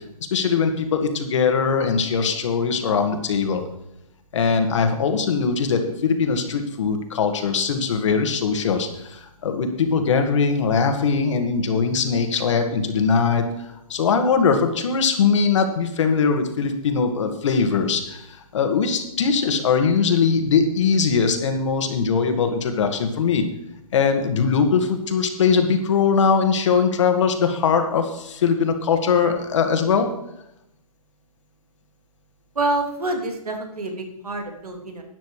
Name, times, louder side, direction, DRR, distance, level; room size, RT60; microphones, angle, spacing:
voice 1, 0.3-3.6 4.3-18.3 18.5-23.4 23.9-30.1, left 5 dB, 55° left, 6 dB, 2.1 m, -21 dB
voice 2, 32.5-35.0, right 2 dB, 85° right, 3 dB, 3.1 m, -27 dB
12.5 x 9.3 x 4.9 m, 0.84 s
hypercardioid pair, 150°, 19 cm